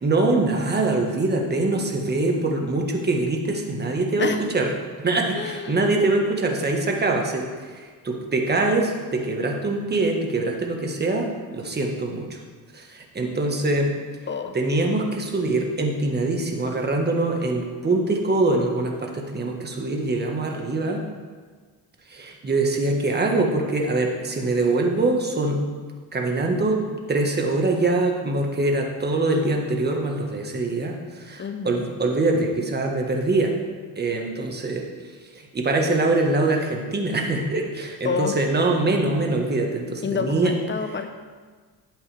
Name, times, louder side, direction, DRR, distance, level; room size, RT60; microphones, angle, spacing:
voice 1, 0.0-4.7 5.0-12.4 12.7-13.9 14.5-21.0 22.1-25.6 26.1-33.5 33.9-34.8 35.3-40.5, right 2 dB, 25° right, 1 dB, 1.5 m, -23 dB
voice 2, 5.3-5.9 14.3-14.5 31.4-31.8 38.0-38.4 40.0-41.1, left 5 dB, 30° left, 7 dB, 0.9 m, -28 dB
11.5 x 8.1 x 3.5 m, 1.5 s
cardioid pair, 100°, 40 cm